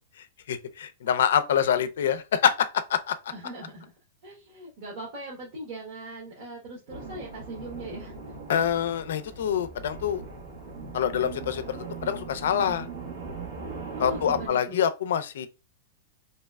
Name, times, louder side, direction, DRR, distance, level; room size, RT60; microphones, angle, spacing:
voice 1, 0.5-3.2 8.5-10.2 10.9-12.9 14.0-15.5, left 8 dB, 80° left, 0.4 m, -26 dB
voice 2, 3.3-3.8 4.2-8.3 9.3-9.5 14.0-14.8, right 1 dB, 45° right, 1.1 m, -40 dB
sound 1, 6.9-14.5, right 4 dB, 80° right, 1.2 m, -39 dB
3.1 x 2.8 x 2.3 m
supercardioid pair, 155°, 0 cm